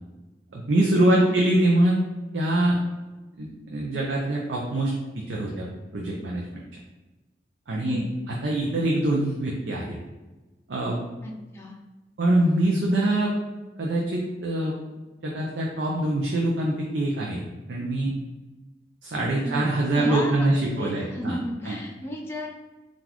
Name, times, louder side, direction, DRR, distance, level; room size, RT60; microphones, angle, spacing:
voice 1, 0.5-2.0 2.3-2.8 3.4-5.7 5.9-6.4 7.7-8.0 8.4-10.0 10.7-11.0 12.2-13.3 13.8-14.7 15.2-17.4 17.7-18.1 19.0-21.4 21.6-21.8, right 1 dB, 85° right, -2 dB, 0.5 m, -24 dB
voice 2, 11.2-11.8 19.4-19.6 19.9-22.5, left 1 dB, 15° left, -2 dB, 0.5 m, -33 dB
3.8 x 2.4 x 2.9 m, 1.1 s
head